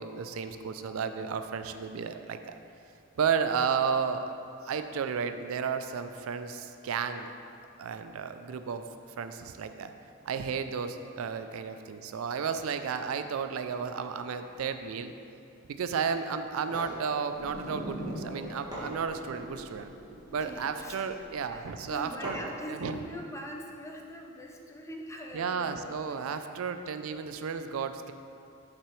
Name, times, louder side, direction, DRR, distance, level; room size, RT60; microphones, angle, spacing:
voice 1, 0.0-2.6 3.2-4.3 4.6-7.3 7.8-8.9 9.2-9.9 10.3-15.1 15.7-19.9 20.3-22.4 22.7-23.0 25.3-28.1, right 6 dB, 85° right, 9 dB, 0.4 m, -33 dB
sound 1, 16.6-17.0 18.3-18.4 18.7-19.5 20.2-20.6 22.2-22.7, right 1 dB, 20° right, 1.5 m, -40 dB
sound 2, 17.3-22.0, equal, 70° left, 1.0 m, -42 dB
voice 2, 20.4-21.1 21.5-26.4, equal, 15° left, 0 dB, 0.6 m, -43 dB
6.7 x 5.9 x 3.1 m, 2.6 s
head